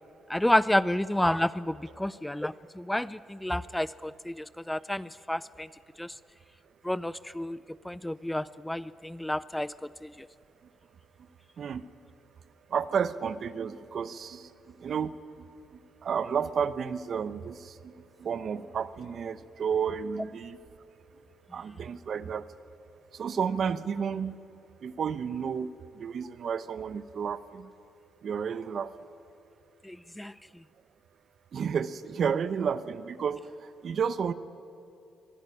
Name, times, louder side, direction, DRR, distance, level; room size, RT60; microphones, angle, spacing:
voice 1, 0.3-5.7 6.0-6.2 6.8-10.3 29.8-30.6, left 1 dB, 5° left, 18 dB, 0.4 m, -30 dB
voice 2, 12.7-14.5 14.8-15.5 16.0-17.9 18.2-20.6 21.5-22.5 23.1-24.4 24.8-27.7 28.2-28.9 31.5-33.4 33.8-34.3, right 7 dB, 55° right, 15 dB, 0.9 m, -31 dB
23.0 x 13.0 x 9.9 m, 2.7 s
cardioid pair, 90°, 0 cm